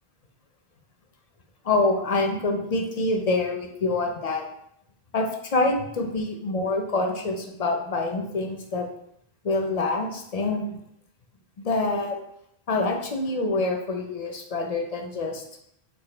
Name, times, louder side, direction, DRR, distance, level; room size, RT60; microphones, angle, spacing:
voice 1, 1.6-4.5 5.1-8.9 9.4-10.8 11.6-12.2 12.7-15.4, left 2 dB, 45° left, 2 dB, 0.6 m, -26 dB
6.1 x 2.5 x 3.2 m, 0.75 s
omnidirectional pair, 1.0 m